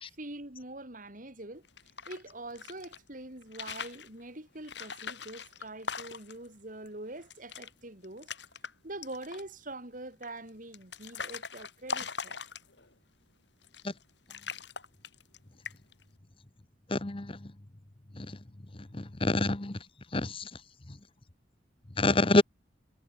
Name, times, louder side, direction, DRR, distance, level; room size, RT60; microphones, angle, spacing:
voice 1, 0.0-1.6 2.1-8.3 8.8-12.4, right 2 dB, 45° right, 4.4 m, -44 dB
sound 1, 1.6-3.0 3.4-4.1 4.6-6.5 6.9-7.0 7.2-7.7 8.0-8.7 9.0-9.5 10.2-12.9 13.6-14.0 14.3-15.4 15.6-16.0, left 5 dB, 70° left, 5.2 m, -40 dB
voice 2, 16.9-17.4 18.2-18.3 18.9-19.8 20.1-20.4 22.0-22.4, left 2 dB, 30° left, 1.0 m, -26 dB
head